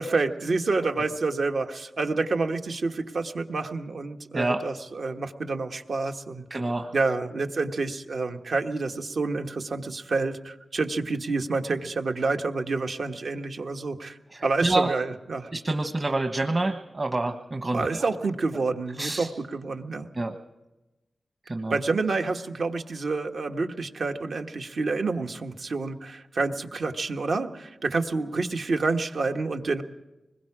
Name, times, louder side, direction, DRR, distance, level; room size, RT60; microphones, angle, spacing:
voice 1, 0.0-6.6 6.9-14.2 14.4-15.5 17.7-20.1 21.7-29.8, right 3 dB, 75° right, 5 dB, 1.3 m, -28 dB
voice 2, 6.5-6.9 14.3-14.9 15.5-18.0 19.0-19.3 20.1-20.4 21.5-21.8, right 2 dB, 40° right, 5 dB, 1.3 m, -27 dB
26.0 x 21.0 x 4.9 m, 1.0 s
cardioid pair, 65°, 0 cm